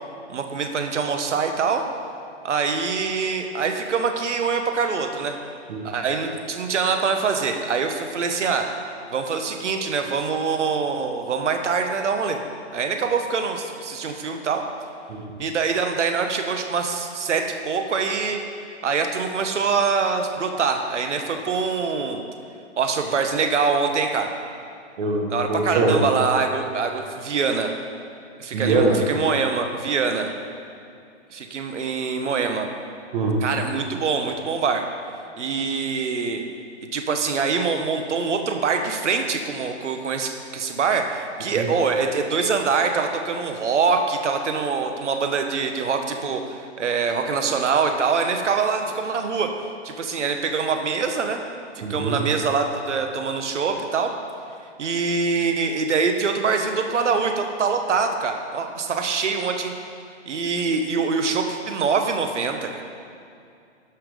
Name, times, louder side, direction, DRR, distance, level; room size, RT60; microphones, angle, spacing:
voice 1, 0.3-1.8 2.4-5.4 5.8-8.7 9.1-12.4 12.7-14.6 15.4-18.4 18.8-22.2 22.8-24.3 25.3-27.7 28.4-30.3 31.3-32.7 33.4-34.8 35.4-36.4 36.9-49.5 49.8-51.4 51.9-54.1 54.8-59.7 60.3-62.8, right 5 dB, 80° right, 5 dB, 1.3 m, -24 dB
voice 2, 25.0-26.0 28.5-29.0 33.1-33.4 41.5-41.7 51.8-52.2, right 3 dB, 45° right, 1 dB, 1.6 m, -22 dB
11.5 x 5.9 x 5.1 m, 2.4 s
hypercardioid pair, 165°, 35 cm